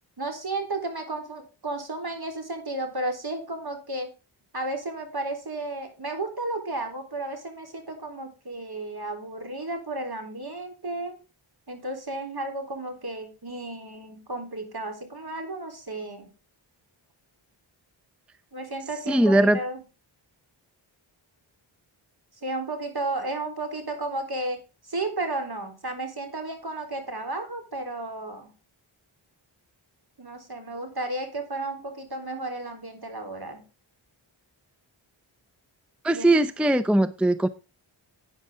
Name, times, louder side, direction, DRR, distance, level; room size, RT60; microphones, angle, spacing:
voice 1, 0.2-4.1 4.5-11.2 11.7-16.3 18.5-19.8 22.4-28.5 30.2-33.6 36.1-36.3, right 2 dB, 50° right, 4.0 m, -33 dB
voice 2, 19.1-19.6 36.0-37.5, right 1 dB, ahead, 0.6 m, -20 dB
12.0 x 9.0 x 3.7 m
wide cardioid pair, 60°, 50 cm